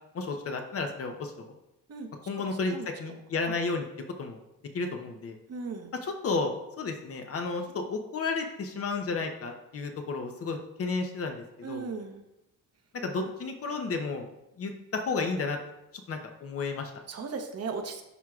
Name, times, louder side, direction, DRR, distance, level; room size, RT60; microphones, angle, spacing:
voice 1, 0.1-1.5 2.3-3.8 4.2-4.4 4.7-5.4 6.0-11.9 13.0-14.3 14.6-15.6 16.1-16.9, left 4 dB, 45° left, 4 dB, 0.8 m, -32 dB
voice 2, 5.5-5.9 11.6-12.2 17.1-18.0, right 5 dB, 50° right, 5 dB, 1.0 m, -36 dB
11.0 x 4.5 x 2.4 m, 0.89 s
cardioid pair, 130°, 32 cm